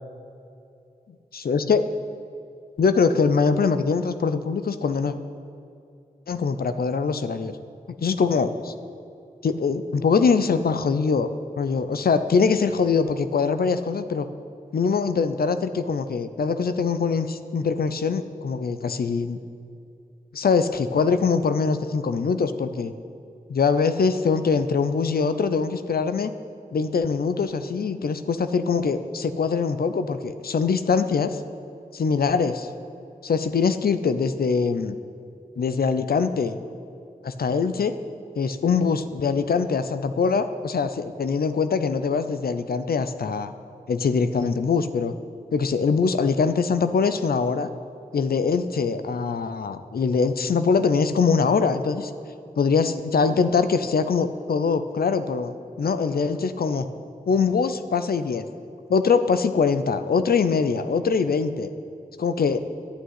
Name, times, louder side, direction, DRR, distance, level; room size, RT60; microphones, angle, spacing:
voice 1, 1.4-1.8 2.8-5.1 6.3-7.6 8.0-8.7 9.4-11.3 11.6-14.3 14.7-19.4 20.3-22.9 23.5-26.3 26.7-31.4 31.9-32.7 33.2-35.0 35.6-36.6 37.2-37.9 38.4-43.5 43.9-45.1 45.5-47.7 48.1-52.1 52.6-56.9 57.3-58.5 58.9-61.7 62.2-62.6, left 5 dB, 85° left, 10 dB, 0.6 m, -23 dB
11.0 x 6.4 x 9.3 m, 2.6 s
wide cardioid pair, 70°, 15 cm